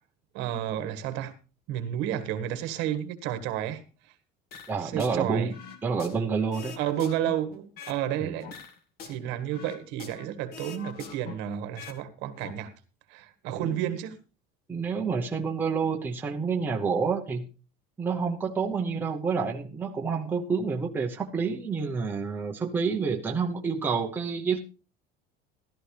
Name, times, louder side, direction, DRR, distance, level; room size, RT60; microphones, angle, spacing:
voice 1, 0.3-1.3 1.7-4.1 4.8-5.5 6.8-8.5 9.1-12.7 13.1-14.2, right 11 dB, 60° right, 1.7 m, -31 dB
sound 1, 4.5-5.2 5.5-8.0 8.4-10.3 10.5-12.0 12.3-12.5, left 6 dB, 50° left, 2.0 m, -44 dB
voice 2, 4.7-5.5 5.8-6.7 8.2-8.4 13.6-13.9 14.7-17.5 18.0-24.6, right 5 dB, 10° right, 0.8 m, -28 dB
14.5 x 12.5 x 3.3 m
cardioid pair, 180°, 20 cm